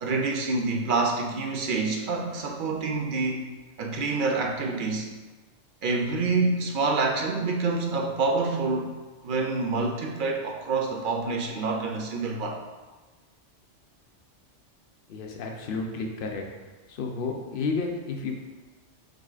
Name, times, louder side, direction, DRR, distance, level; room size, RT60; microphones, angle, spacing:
voice 1, 0.0-3.5 3.8-5.1 5.8-8.9 9.2-12.6, right 3 dB, 60° right, 1 dB, 0.5 m, -27 dB
voice 2, 15.1-16.4 16.9-18.3, left 4 dB, 55° left, 2 dB, 0.7 m, -31 dB
4.9 x 4.0 x 2.4 m, 1.3 s
omnidirectional pair, 1.3 m